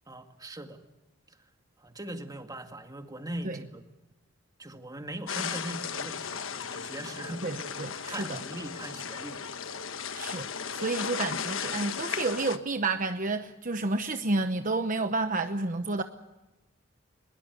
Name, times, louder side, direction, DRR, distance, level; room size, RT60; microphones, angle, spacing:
voice 1, 0.1-0.8 1.3-1.4 1.8-3.8 4.6-7.6 8.1-9.4, right 1 dB, 20° right, 6 dB, 2.0 m, -40 dB
sound 1, 5.3-12.6, left 6 dB, 75° left, 1.3 m, -36 dB
voice 2, 7.4-8.4 10.1-10.5 10.7-16.0, right 3 dB, 40° right, 8 dB, 1.0 m, -30 dB
22.0 x 22.0 x 8.0 m, 1.0 s
head